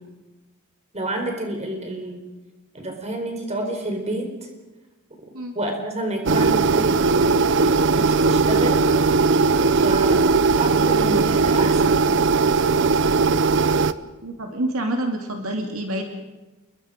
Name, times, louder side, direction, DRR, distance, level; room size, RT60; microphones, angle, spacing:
voice 1, 0.9-2.3 2.7-4.5 5.5-8.9 9.8-10.3 10.6-12.1, right 1 dB, 30° right, 3 dB, 4.6 m, -29 dB
sound 1, 6.3-13.9, right 4 dB, 55° right, 0.7 m, -18 dB
voice 2, 14.2-16.0, right 1 dB, 75° right, 3 dB, 2.5 m, -27 dB
28.5 x 22.0 x 5.2 m, 1.1 s
head